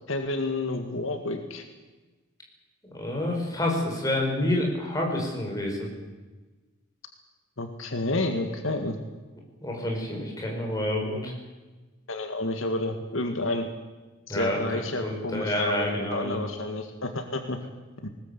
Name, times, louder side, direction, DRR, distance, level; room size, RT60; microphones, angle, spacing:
voice 1, 0.1-1.6 7.6-9.0 12.1-13.7 14.3-17.6 18.0-18.1, left 2 dB, 70° left, 6 dB, 1.9 m, -30 dB
voice 2, 2.9-5.9 9.6-11.3 14.3-16.4, left 1 dB, 15° left, 0 dB, 5.2 m, -28 dB
20.0 x 19.5 x 8.4 m, 1.2 s
head